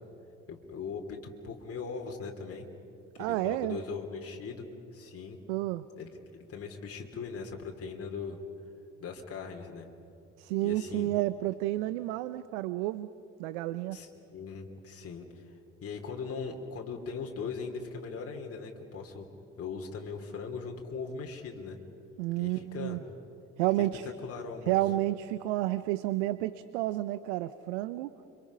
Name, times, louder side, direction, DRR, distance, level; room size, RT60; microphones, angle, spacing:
voice 1, 0.5-2.7 3.2-4.6 4.9-5.4 6.0-8.4 9.0-9.9 10.6-11.1 13.9-19.3 19.6-21.8 22.4-23.0 23.8-23.9 24.2-24.8, left 5 dB, 40° left, 1 dB, 3.2 m, -40 dB
voice 2, 3.2-3.8 5.5-5.8 10.4-13.1 13.4-14.0 22.2-23.0 23.6-24.1 24.7-28.1, right 16 dB, 75° right, 14 dB, 0.8 m, -30 dB
30.0 x 25.0 x 5.6 m, 2.9 s
hypercardioid pair, 55°, 35 cm